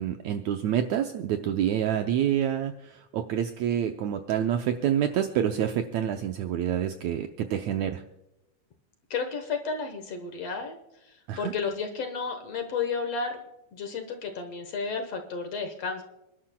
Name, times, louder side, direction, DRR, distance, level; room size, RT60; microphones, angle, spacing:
voice 1, 0.0-8.0 11.3-11.5, right 10 dB, 75° right, 6 dB, 1.7 m, -27 dB
voice 2, 9.1-10.8 11.4-13.4 13.7-16.0, left 5 dB, 60° left, 5 dB, 1.9 m, -32 dB
29.0 x 11.5 x 2.2 m, 0.91 s
omnidirectional pair, 3.9 m